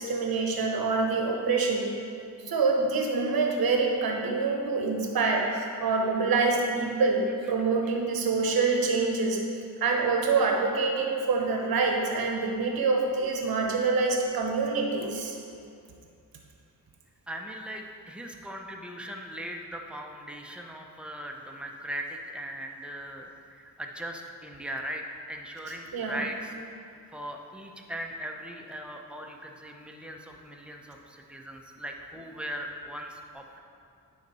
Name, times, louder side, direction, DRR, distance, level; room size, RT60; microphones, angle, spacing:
voice 1, 0.0-1.9 2.4-9.4 9.8-15.4 25.9-26.3, right 4 dB, 80° right, 1 dB, 1.0 m, -26 dB
voice 2, 17.3-26.5 27.1-33.6, equal, 5° right, 1 dB, 0.7 m, -39 dB
10.0 x 4.1 x 4.2 m, 2.5 s
wide cardioid pair, 95°, 35 cm